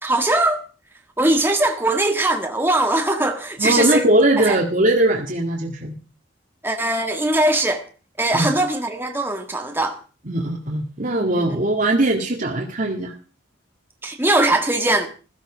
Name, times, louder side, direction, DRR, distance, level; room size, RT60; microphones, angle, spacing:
voice 1, 0.0-0.6 1.2-4.1 4.4-4.6 6.6-7.8 8.2-10.0 11.4-11.6 14.0-15.1, right 2 dB, 10° right, 1.7 m, -20 dB
voice 2, 3.6-6.0 8.3-8.5 10.3-13.1, right 1 dB, 45° right, 2.0 m, -20 dB
16.0 x 14.5 x 5.0 m
head